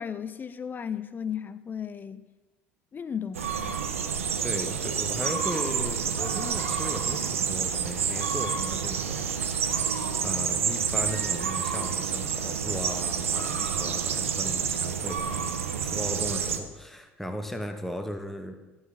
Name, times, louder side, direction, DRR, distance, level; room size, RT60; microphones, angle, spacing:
voice 1, 0.0-2.3 2.9-3.8, left 7 dB, 25° left, 14 dB, 0.5 m, -35 dB
sound 1, 3.3-16.6, right 7 dB, 75° right, 0.6 m, -29 dB
voice 2, 4.4-9.3 9.9-15.6 15.8-18.6, equal, 5° left, 6 dB, 0.9 m, -37 dB
11.0 x 5.6 x 5.4 m, 1.2 s
figure-of-eight pair, 60°, 7 cm